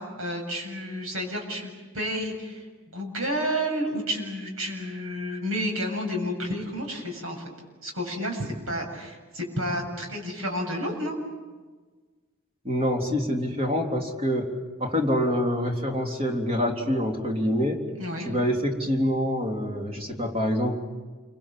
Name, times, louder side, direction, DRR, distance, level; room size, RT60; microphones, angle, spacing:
voice 1, 0.0-7.5 7.8-11.2 18.0-18.3, equal, 80° right, 2 dB, 7.5 m, -31 dB
voice 2, 12.7-14.5 14.8-17.9 18.2-20.8, equal, 30° right, 2 dB, 3.5 m, -26 dB
29.0 x 25.0 x 7.6 m, 1.4 s
head